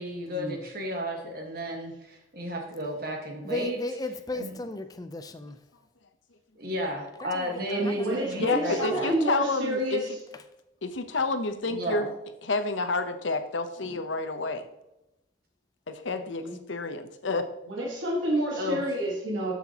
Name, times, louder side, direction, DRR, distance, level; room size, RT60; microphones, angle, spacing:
voice 1, 0.0-3.8 4.3-4.5 6.6-9.1 11.6-12.1 18.6-18.8, equal, 50° right, 1 dB, 1.5 m, -33 dB
voice 2, 3.4-5.6 7.2-8.3 8.7-9.1, left 2 dB, 20° left, 8 dB, 0.4 m, -36 dB
voice 3, 7.5-10.2 13.8-14.0 16.4-16.5 17.7-19.5, right 1 dB, 85° right, -2 dB, 1.7 m, -29 dB
voice 4, 8.4-10.0 10.8-12.1 12.4-14.7 15.9-16.4 16.7-17.5, left 3 dB, 80° left, 9 dB, 0.8 m, -29 dB
13.0 x 5.9 x 2.9 m, 0.91 s
head